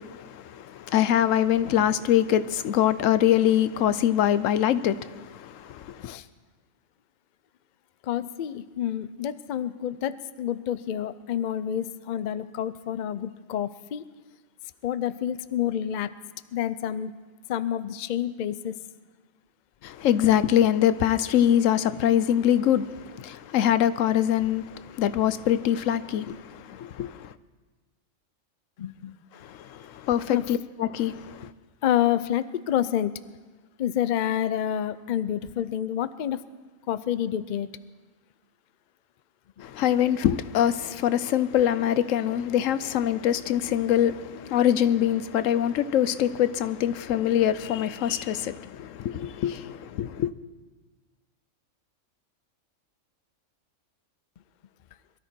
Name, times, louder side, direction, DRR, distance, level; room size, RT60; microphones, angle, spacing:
voice 1, 0.0-6.2 19.8-27.3 29.4-31.5 39.6-50.3, left 10 dB, 80° left, 1.0 m, -24 dB
voice 2, 8.0-14.0 14.8-16.1 16.5-17.1 17.5-18.7 28.8-29.2 30.3-30.4 31.8-33.1 33.8-36.4 36.9-37.7, left 10 dB, 55° left, 0.5 m, -28 dB
22.5 x 13.0 x 4.4 m
omnidirectional pair, 1.3 m